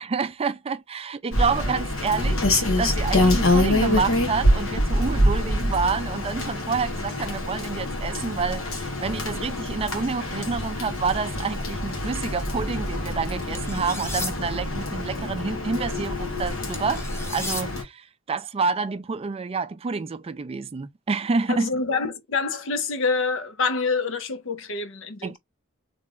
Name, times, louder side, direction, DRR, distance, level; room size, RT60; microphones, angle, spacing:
voice 1, 0.0-21.7 25.2-25.4, right 5 dB, 30° right, 0.4 m, -28 dB
Rain, 1.3-17.8, left 1 dB, 90° left, 1.4 m, -25 dB
sound 1, 13.5-14.3 16.7-17.6, left 2 dB, 15° left, 0.7 m, -33 dB
voice 2, 21.5-25.4, left 4 dB, 70° left, 0.7 m, -26 dB
3.4 x 2.4 x 3.4 m
head